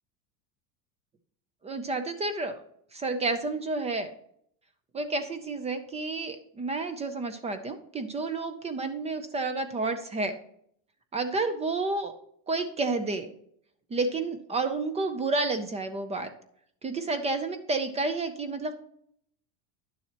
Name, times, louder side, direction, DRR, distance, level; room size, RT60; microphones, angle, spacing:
voice 1, 1.6-2.6 2.9-4.1 4.9-10.4 11.1-12.1 12.5-13.3 13.9-16.3 16.8-18.7, right 3 dB, 15° right, 10 dB, 0.4 m, -30 dB
10.5 x 7.0 x 2.9 m, 0.69 s
supercardioid pair, 140°, 47 cm